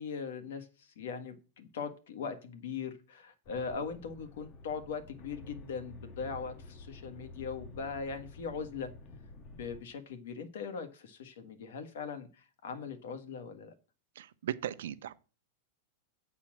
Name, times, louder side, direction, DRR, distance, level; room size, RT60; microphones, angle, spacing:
voice 1, 0.0-8.9 9.5-13.7, left 5 dB, 75° left, 1.6 m, -40 dB
sound 1, 3.4-9.8, left 2 dB, 20° left, 0.8 m, -50 dB
voice 2, 14.2-15.1, right 10 dB, 75° right, 0.7 m, -37 dB
8.7 x 4.3 x 7.4 m
supercardioid pair, 175°, 0 cm